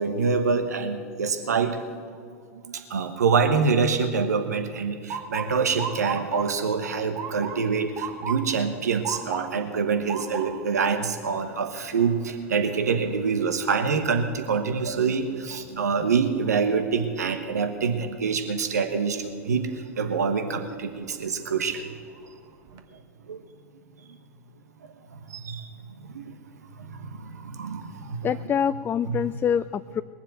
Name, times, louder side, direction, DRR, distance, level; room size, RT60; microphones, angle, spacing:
voice 1, 0.0-1.8 2.3-2.4 2.6-21.8 22.9-23.0 23.3-23.4 24.8-25.7 26.0-26.4 26.7-28.5 29.1-29.2, right 5 dB, 85° right, 7 dB, 1.2 m, -26 dB
Motor vehicle (road) / Siren, 5.1-17.0 17.4-17.9 18.7-19.0 20.8-21.1 21.6-21.7 22.1-22.8, right 6 dB, 45° right, 1.3 m, -38 dB
voice 2, 28.2-30.0, left 8 dB, 25° left, 12 dB, 0.4 m, -25 dB
20.5 x 7.5 x 9.1 m, 2.2 s
hypercardioid pair, 95°, 9 cm